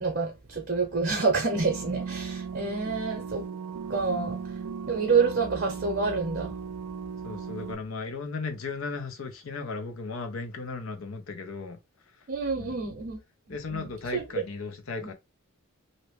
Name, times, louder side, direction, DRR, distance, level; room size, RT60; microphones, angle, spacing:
voice 1, 0.0-3.4 3.9-4.4 4.9-6.5 12.3-13.2 13.7-14.2, right 4 dB, 45° right, 0.6 m, -27 dB
sound 1, 1.5-7.7, right 6 dB, 80° right, 0.4 m, -37 dB
voice 2, 7.2-11.8 12.6-12.9 13.5-15.1, left 4 dB, 70° left, 0.6 m, -36 dB
2.7 x 2.1 x 3.1 m
head